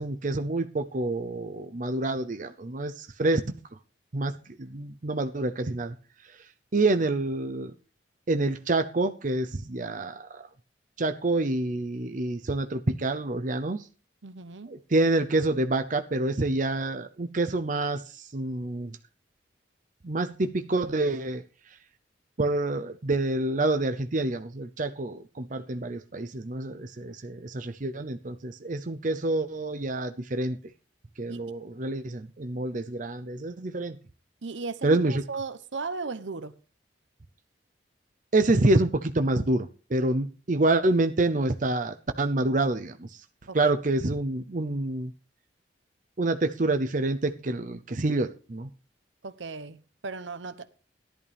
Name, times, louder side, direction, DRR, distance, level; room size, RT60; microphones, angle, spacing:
voice 1, 0.0-3.5 4.1-5.9 6.7-7.7 8.3-10.4 11.0-13.8 14.7-18.0 18.3-19.0 20.0-21.4 22.4-30.6 31.2-34.0 34.8-35.2 38.3-43.1 43.5-45.1 46.2-48.7, right 2 dB, 45° right, 0.7 m, -27 dB
voice 2, 14.2-14.7 31.3-31.4 34.4-36.5 43.5-43.7 49.2-50.7, right 4 dB, 85° right, 0.9 m, -36 dB
15.0 x 11.0 x 3.5 m
head